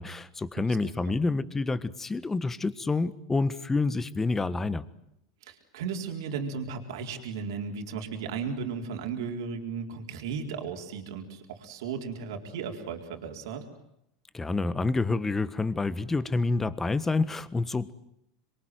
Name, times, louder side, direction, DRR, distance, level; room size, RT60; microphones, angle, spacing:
voice 1, 0.0-4.8 14.3-17.9, left 3 dB, 15° left, 16 dB, 1.5 m, -28 dB
voice 2, 0.6-1.2 5.4-13.7, right 6 dB, 75° right, 3 dB, 4.2 m, -35 dB
26.5 x 23.0 x 9.3 m, 0.77 s
hypercardioid pair, 105°, 2 cm